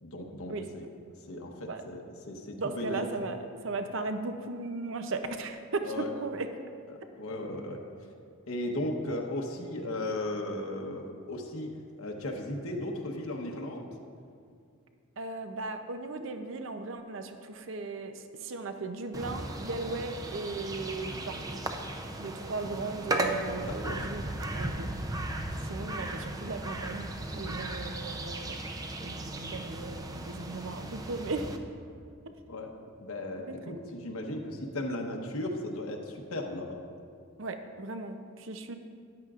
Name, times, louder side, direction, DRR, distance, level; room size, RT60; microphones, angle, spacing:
voice 1, 0.0-0.8 1.2-3.0 5.8-6.1 6.9-7.8 8.5-13.9 23.7-24.0 32.5-36.8, left 1 dB, 85° left, 1 dB, 1.1 m, -36 dB
voice 2, 2.6-3.4 3.6-6.5 15.2-21.6 22.2-24.2 24.5-24.9 25.7-27.1 27.3-28.6 29.0-31.5 32.3-32.4 33.8-33.9 37.4-38.8, right 3 dB, 60° right, 7 dB, 0.6 m, -37 dB
sound 1, 19.1-31.6, right 1 dB, 15° right, 0.5 m, -36 dB
13.5 x 10.5 x 2.5 m, 2.2 s
head